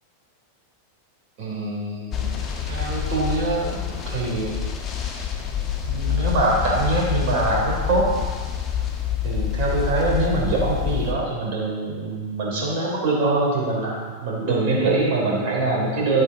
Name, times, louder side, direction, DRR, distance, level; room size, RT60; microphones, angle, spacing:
voice 1, 1.4-2.3 2.7-4.6 5.9-8.1 9.2-16.2, right 2 dB, 50° right, -2 dB, 3.4 m, -23 dB
sound 1, 2.1-11.1, left 8 dB, 30° left, 1.3 m, -27 dB
11.0 x 8.7 x 4.1 m, 1.5 s
figure-of-eight pair, 90°, 0 cm